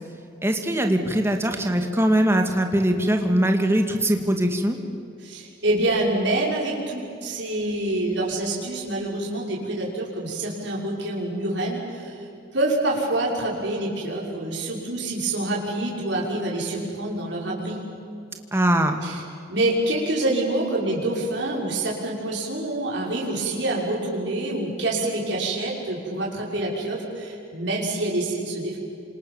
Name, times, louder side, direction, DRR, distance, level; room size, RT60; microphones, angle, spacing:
voice 1, 0.4-4.8 18.5-19.0, right 1 dB, 15° right, 4 dB, 2.4 m, -21 dB
voice 2, 5.2-12.3 12.5-17.8 19.0-19.2 19.5-28.8, right 2 dB, 70° right, -3 dB, 6.3 m, -26 dB
28.0 x 27.0 x 7.3 m, 2.7 s
head